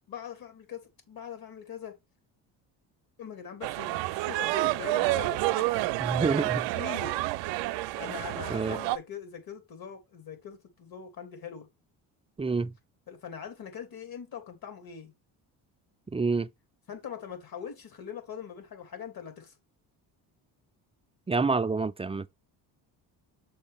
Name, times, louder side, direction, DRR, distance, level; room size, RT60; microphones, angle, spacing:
voice 1, 0.1-2.0 3.2-5.9 6.8-7.2 8.0-11.7 13.1-15.1 16.9-19.5, left 7 dB, 55° left, 2.7 m, -42 dB
sound 1, 3.6-9.0, right 18 dB, 85° right, 0.6 m, -29 dB
voice 2, 6.0-6.7 8.5-8.8 12.4-12.8 16.1-16.5 21.3-22.3, right 4 dB, 15° right, 0.4 m, -28 dB
6.4 x 5.3 x 3.5 m
cardioid pair, 85°, 42 cm